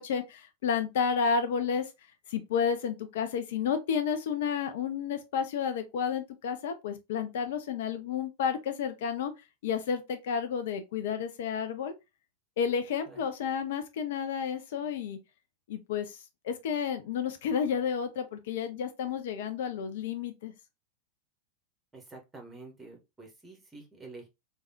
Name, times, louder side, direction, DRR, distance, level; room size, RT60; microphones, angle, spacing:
voice 1, 0.0-1.9 2.3-9.3 9.6-11.9 12.6-15.2 15.7-16.2 16.4-20.5, left 7 dB, 55° left, 0.4 m, -31 dB
voice 2, 21.9-24.3, right 3 dB, 10° right, 1.0 m, -48 dB
3.3 x 2.2 x 2.6 m
figure-of-eight pair, 90°, 0 cm